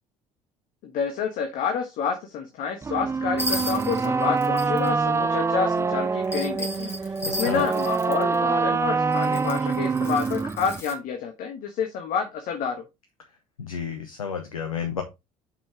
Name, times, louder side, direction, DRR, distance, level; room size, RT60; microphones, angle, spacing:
voice 1, 0.8-12.8, left 6 dB, 50° left, 5 dB, 1.2 m, -29 dB
sound 1, 2.8-10.8, right 4 dB, 15° right, 0.5 m, -25 dB
sound 2, 3.4-4.9 6.2-8.3 9.1-10.9, left 1 dB, 15° left, 2.7 m, -34 dB
voice 2, 13.6-15.0, left 7 dB, 80° left, 5 dB, 1.0 m, -31 dB
7.4 x 5.6 x 3.4 m, 0.23 s
figure-of-eight pair, 55°, 18 cm